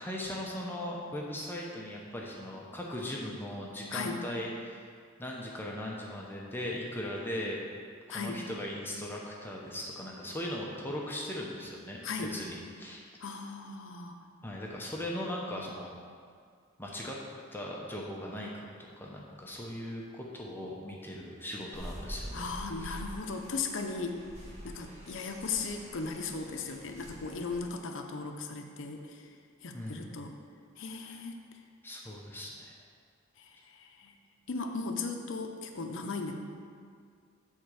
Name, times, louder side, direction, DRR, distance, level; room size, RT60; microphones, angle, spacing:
voice 1, 0.0-4.9 5.2-7.6 8.1-12.0 12.3-13.1 14.4-15.9 16.8-17.2 17.5-18.7 19.0-22.5 22.8-22.9 29.7-30.1 31.0-31.2 31.8-32.7, left 1 dB, 10° left, -3 dB, 0.7 m, -39 dB
voice 2, 8.1-8.4 12.0-12.3 13.2-14.2 22.3-24.2 24.6-29.3 29.6-30.3 30.8-31.4 33.4-34.2 34.5-36.3, left 4 dB, 65° left, 4 dB, 0.7 m, -37 dB
sound 1, 21.7-27.6, equal, 35° right, 1.6 m, -46 dB
7.9 x 3.6 x 6.6 m, 2.1 s
head